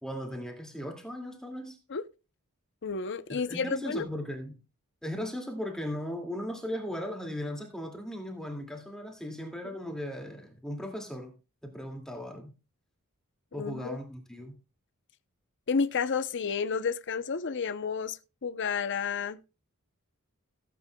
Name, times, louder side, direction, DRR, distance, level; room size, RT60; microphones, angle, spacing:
voice 1, 0.0-1.8 3.3-4.6 5.0-11.3 11.6-12.5 13.5-14.5, equal, 5° left, 2.2 m, -37 dB
voice 2, 2.8-4.1 13.5-14.0 15.7-19.4, left 5 dB, 55° left, 0.7 m, -31 dB
17.5 x 8.6 x 2.3 m
head